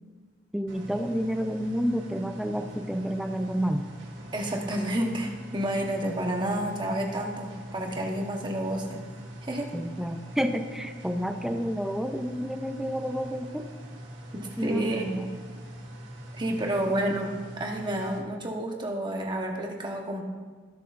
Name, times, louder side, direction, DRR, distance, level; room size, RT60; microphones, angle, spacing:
voice 1, 0.5-3.8 9.7-13.6 14.6-15.3, equal, ahead, 6 dB, 0.5 m, -30 dB
sound 1, 0.7-18.2, equal, 80° right, 2.2 m, -43 dB
voice 2, 4.3-9.0 9.4-9.7 14.3-15.0 16.3-20.2, right 1 dB, 25° right, 1 dB, 1.2 m, -30 dB
18.0 x 7.6 x 2.6 m, 1.5 s
head